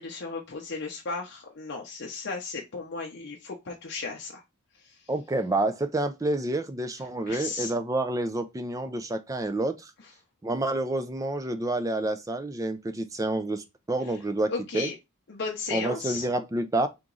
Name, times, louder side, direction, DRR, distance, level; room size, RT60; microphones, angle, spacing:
voice 1, 0.0-4.4 4.8-5.0 7.3-7.7 14.5-14.9 15.3-16.3, left 4 dB, 50° left, 0.6 m, -35 dB
voice 2, 5.1-9.9 10.4-14.9 15.7-16.9, right 2 dB, 15° right, 0.4 m, -28 dB
3.7 x 3.0 x 3.8 m
head